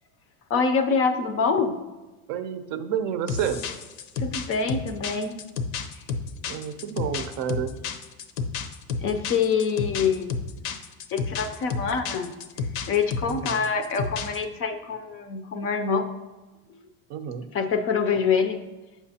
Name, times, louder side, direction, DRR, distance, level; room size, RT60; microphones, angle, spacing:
voice 1, 0.5-1.8 4.2-5.4 9.0-10.3 11.1-12.4 12.9-16.1 17.5-18.6, left 5 dB, 35° left, 8 dB, 0.5 m, -25 dB
voice 2, 2.3-3.6 6.5-7.8 13.3-13.7 17.1-17.5, right 8 dB, 50° right, 10 dB, 0.6 m, -30 dB
sound 1, 3.3-14.4, left 5 dB, 80° left, 0.7 m, -31 dB
8.2 x 6.0 x 2.8 m, 1.2 s
supercardioid pair, 130°, 40 cm